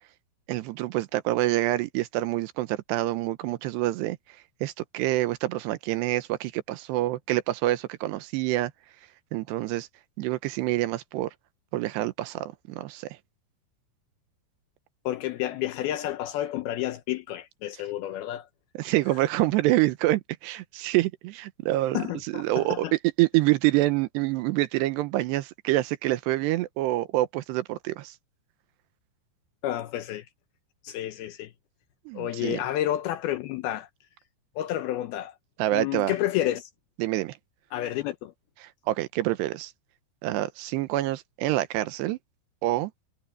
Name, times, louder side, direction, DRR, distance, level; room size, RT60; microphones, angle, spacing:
voice 1, 0.5-4.2 4.6-8.7 9.3-9.9 10.2-11.3 11.7-13.1 18.8-28.1 32.1-32.6 35.6-36.1 37.0-37.3 38.6-39.7 40.2-42.2 42.6-42.9, right 16 dB, 80° right, 2.8 m, -26 dB
voice 2, 15.1-18.5 21.9-22.9 29.6-30.3 30.8-31.5 32.1-33.9 34.6-35.3 35.7-36.7 37.7-38.3, left 13 dB, 80° left, 2.3 m, -30 dB
omnidirectional pair, 5.1 m